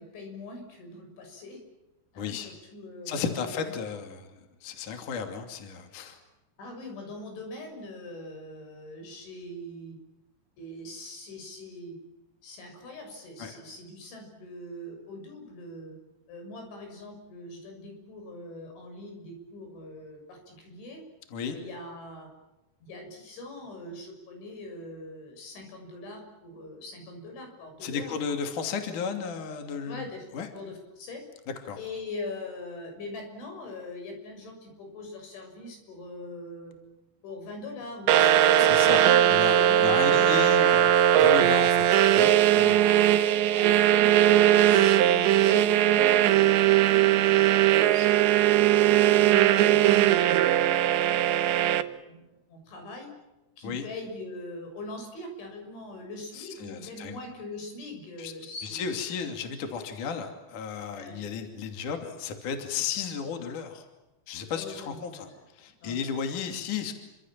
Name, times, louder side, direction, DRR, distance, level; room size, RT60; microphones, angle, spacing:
voice 1, 0.0-1.6 2.1-3.5 6.6-10.0 10.6-12.0 12.4-16.0 16.3-21.0 21.5-22.3 22.8-28.1 29.9-30.2 30.5-31.2 31.8-36.7 37.2-40.8 42.4-48.1 48.6-50.7 51.7-53.1 53.6-59.3 60.9-61.2 64.6-65.4 65.8-66.0, left 2 dB, 90° left, 4 dB, 9.1 m, -42 dB
voice 2, 2.2-2.5 3.1-6.2 13.4-13.6 21.3-21.6 27.8-30.1 30.3-30.5 31.7-31.8 38.6-42.8 53.6-53.8 56.3-57.2 58.2-58.3 58.7-63.9 64.3-65.3 65.5-66.9, left 6 dB, 50° left, 5 dB, 3.9 m, -34 dB
sound 1, 38.1-51.8, right 12 dB, 75° right, 3.3 m, -20 dB
29.0 x 26.0 x 7.5 m, 0.98 s
omnidirectional pair, 5.2 m